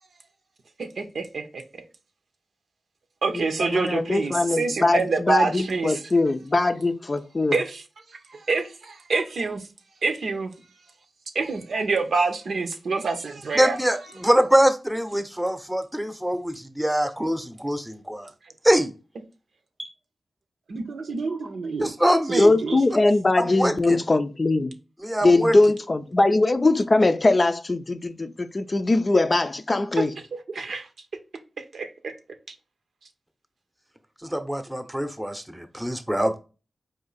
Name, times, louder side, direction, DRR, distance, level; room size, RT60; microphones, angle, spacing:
voice 1, 0.8-1.6 3.2-6.0 7.5-7.8 8.1-9.6 10.0-10.5 11.3-13.8 20.7-21.9 22.3-22.8 30.0-30.1 30.5-30.9 31.6-32.1, right 4 dB, 80° right, 0.7 m, -27 dB
voice 2, 3.3-7.6 22.3-24.7 25.2-30.2, left 2 dB, 40° left, 0.4 m, -21 dB
voice 3, 13.5-18.3 18.6-18.9 19.8-19.9 21.8-22.5 23.4-24.0 25.0-25.6 34.2-36.4, equal, 10° right, 0.7 m, -23 dB
4.2 x 2.6 x 3.9 m
cardioid pair, 55°, 0 cm